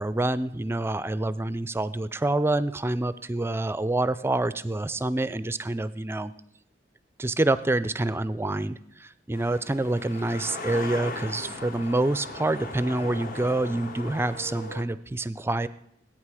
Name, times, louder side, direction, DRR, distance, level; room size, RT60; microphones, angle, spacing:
voice 1, 0.0-6.3 7.2-15.7, right 2 dB, 15° right, 16 dB, 0.4 m, -27 dB
sound 1, 9.3-14.8, left 2 dB, 50° left, 1.0 m, -38 dB
20.0 x 9.0 x 4.8 m, 0.77 s
head